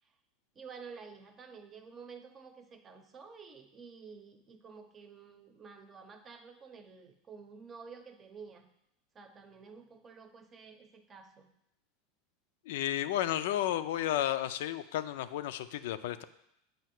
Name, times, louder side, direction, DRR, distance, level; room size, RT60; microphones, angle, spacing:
voice 1, 0.5-8.7 9.1-11.5, right 5 dB, 30° right, 7 dB, 0.7 m, -51 dB
voice 2, 12.7-16.2, left 12 dB, 75° left, 12 dB, 0.4 m, -32 dB
7.9 x 2.8 x 5.9 m, 0.79 s
supercardioid pair, 115°, 0 cm